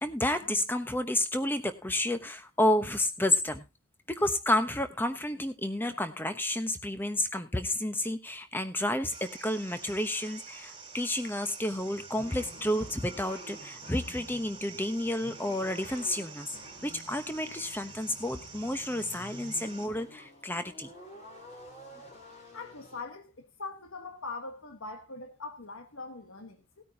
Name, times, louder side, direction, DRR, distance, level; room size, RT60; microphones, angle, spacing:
voice 1, 0.0-3.6 4.1-16.5 16.8-20.9, left 1 dB, 10° left, 1.0 m, -30 dB
sound 1, 9.1-19.9, right 5 dB, 25° right, 2.3 m, -48 dB
sound 2, 11.7-23.0, left 1 dB, 35° left, 4.2 m, -50 dB
voice 2, 22.5-26.8, left 3 dB, 75° left, 1.4 m, -42 dB
18.5 x 9.3 x 2.8 m
head